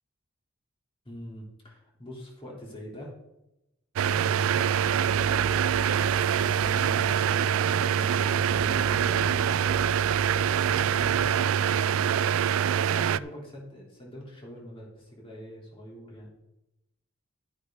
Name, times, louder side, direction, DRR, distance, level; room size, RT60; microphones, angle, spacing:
voice 1, 1.1-3.1 4.0-5.7 6.3-9.6 10.6-12.4 12.9-16.3, equal, 25° left, -3 dB, 3.4 m, -44 dB
sound 1, 4.0-13.2, right 8 dB, 75° right, 0.3 m, -24 dB
sound 2, 4.8-11.3, right 1 dB, 20° right, 0.9 m, -42 dB
12.0 x 9.7 x 3.9 m, 0.90 s
head